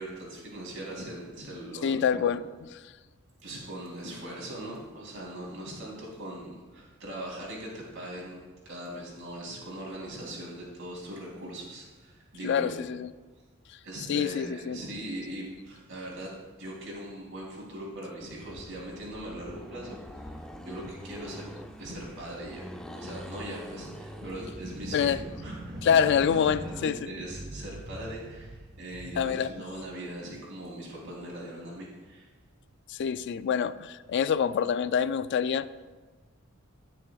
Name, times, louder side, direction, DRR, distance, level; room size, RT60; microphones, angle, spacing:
voice 1, 0.0-2.4 3.4-8.4 8.6-12.8 13.8-16.3 16.6-21.5 21.8-32.3, right 1 dB, 65° right, 3.2 m, -40 dB
voice 2, 1.8-2.4 2.7-2.8 12.4-13.1 14.1-14.8 24.9-25.2 25.8-27.0 29.2-29.5 32.9-35.7, left 7 dB, 55° left, 0.3 m, -26 dB
Accelerating revving vroom, 18.2-26.9, equal, 5° left, 0.6 m, -44 dB
sound 1, 24.4-30.4, right 1 dB, 45° right, 1.3 m, -43 dB
20.0 x 6.7 x 2.4 m
head